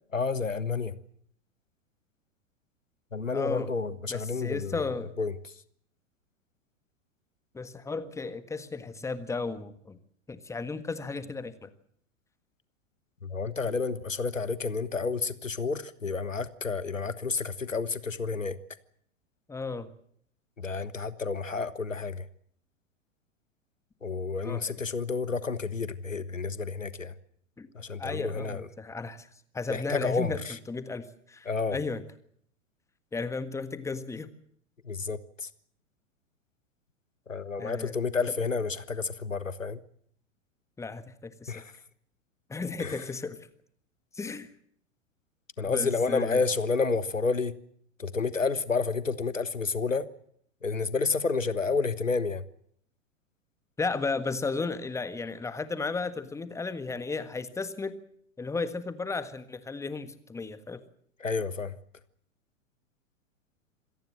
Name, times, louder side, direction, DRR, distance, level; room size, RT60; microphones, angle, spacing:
voice 1, 0.1-1.0 3.1-5.6 13.2-18.6 20.6-22.3 24.0-27.1 27.7-28.7 29.7-30.6 31.4-31.8 34.8-35.5 37.3-39.8 41.5-41.8 42.8-43.1 45.6-47.5 48.0-50.1 50.6-52.4 61.2-61.8, left 4 dB, 85° left, 16 dB, 1.4 m, -30 dB
voice 2, 3.3-3.7 4.1-5.1 7.5-10.0 10.3-11.7 19.5-19.9 24.4-24.8 27.6-27.7 28.0-29.3 29.5-30.4 30.7-32.0 33.1-34.3 37.6-37.9 40.8-41.6 42.5-43.4 44.1-44.5 45.7-46.4 53.8-58.0 58.4-60.8, left 4 dB, 10° left, 13 dB, 1.5 m, -34 dB
26.0 x 18.0 x 7.7 m, 0.66 s
figure-of-eight pair, 95°, 38 cm